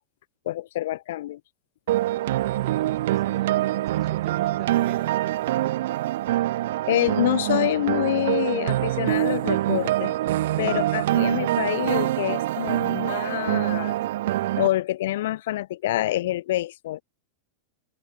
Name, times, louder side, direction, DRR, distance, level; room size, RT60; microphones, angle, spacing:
voice 1, 0.4-1.4 6.9-10.1 10.6-14.0 14.6-17.0, left 14 dB, 55° left, 1.5 m, -26 dB
sound 1, 1.9-14.7, right 15 dB, 55° right, 0.3 m, -25 dB
voice 2, 2.4-5.8, right 17 dB, 35° right, 3.9 m, -44 dB
open air
figure-of-eight pair, 90°, 0 cm